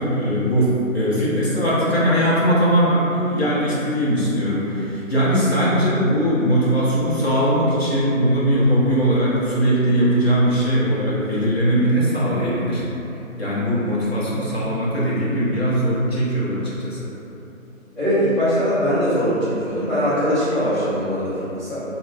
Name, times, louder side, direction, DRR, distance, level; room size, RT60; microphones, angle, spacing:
voice 1, 0.0-12.8 13.4-17.1, equal, 50° left, -9 dB, 0.9 m, -20 dB
voice 2, 17.9-21.8, equal, 20° right, -23 dB, 0.9 m, -21 dB
2.8 x 2.5 x 2.5 m, 2.9 s
figure-of-eight pair, 160°, 40 cm